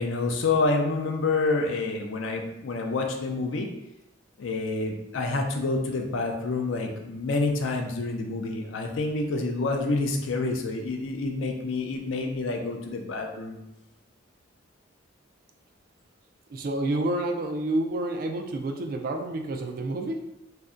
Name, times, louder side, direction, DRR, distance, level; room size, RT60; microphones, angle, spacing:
voice 1, 0.0-3.7 4.4-13.6, left 3 dB, 85° left, 3 dB, 0.4 m, -28 dB
voice 2, 16.5-20.5, right 1 dB, 45° right, 4 dB, 0.3 m, -29 dB
2.6 x 2.1 x 3.5 m, 0.89 s
head